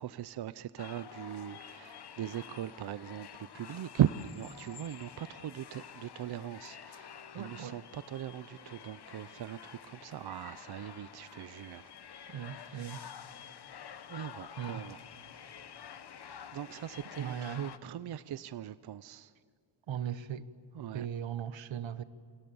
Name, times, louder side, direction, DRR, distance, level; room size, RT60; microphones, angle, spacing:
voice 1, 0.0-13.2 14.1-15.0 16.5-19.3 20.7-21.1, right 11 dB, 60° right, 0.6 m, -39 dB
sound 1, 0.8-17.8, left 8 dB, 60° left, 1.3 m, -49 dB
voice 2, 7.3-7.8 12.3-13.0 14.6-14.8 17.2-17.7 19.9-20.4 20.9-22.0, right 9 dB, 85° right, 1.3 m, -38 dB
27.5 x 27.5 x 7.0 m
wide cardioid pair, 170°, 44 cm